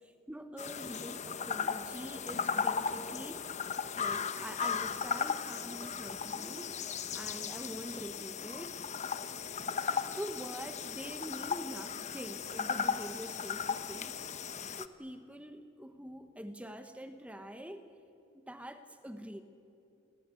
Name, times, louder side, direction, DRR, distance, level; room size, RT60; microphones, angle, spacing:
voice 1, 0.0-3.5 4.0-6.7 7.1-8.8 10.2-14.2 14.8-17.8 18.3-19.4, equal, 5° right, 8 dB, 1.1 m, -45 dB
sound 1, 0.6-14.9, left 6 dB, 35° left, 0.9 m, -36 dB
29.5 x 22.0 x 8.3 m, 2.7 s
head